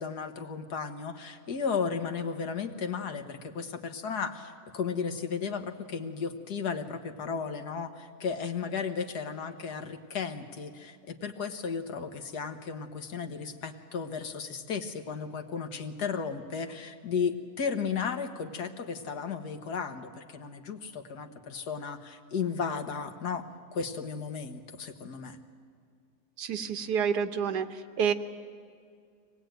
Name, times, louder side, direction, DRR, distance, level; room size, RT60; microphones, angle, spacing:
voice 1, 0.0-23.5 23.7-25.4, left 6 dB, 80° left, 7 dB, 1.8 m, -34 dB
voice 2, 26.4-27.7 28.0-28.1, right 7 dB, 85° right, 8 dB, 1.6 m, -28 dB
24.0 x 19.0 x 9.1 m, 2.2 s
omnidirectional pair, 1.7 m